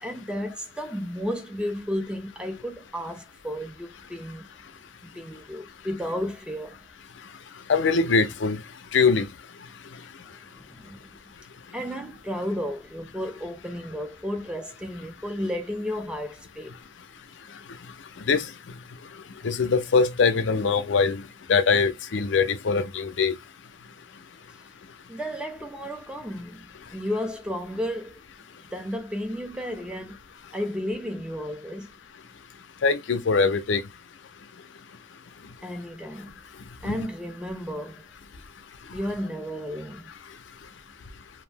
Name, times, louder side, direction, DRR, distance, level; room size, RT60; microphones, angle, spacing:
voice 1, 0.0-4.5 5.0-6.8 10.5-11.2 11.7-16.7 25.1-26.7 26.9-28.2 28.7-30.2 30.5-31.9 35.6-36.3 36.8-38.0 38.9-40.1, equal, 5° right, 0.5 m, -33 dB
voice 2, 7.7-8.6 8.9-9.3 18.3-18.5 19.4-21.2 21.5-23.3 32.8-33.8 36.8-37.1, left 4 dB, 70° left, 0.5 m, -22 dB
2.6 x 2.0 x 3.2 m
head